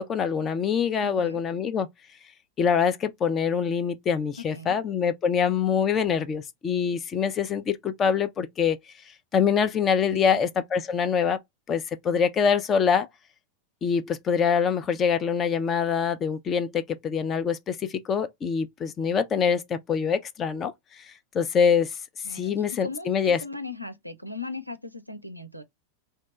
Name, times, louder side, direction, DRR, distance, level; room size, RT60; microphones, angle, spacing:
voice 1, 0.0-1.9 2.6-8.8 9.3-11.4 11.7-13.1 13.8-21.0 21.3-21.9 22.3-23.4, left 7 dB, 25° left, 0.4 m, -24 dB
voice 2, 1.0-1.4 4.5-4.8 10.1-10.4 22.2-25.6, left 3 dB, 90° right, 0.4 m, -38 dB
2.7 x 2.1 x 3.0 m
figure-of-eight pair, 90°, 0 cm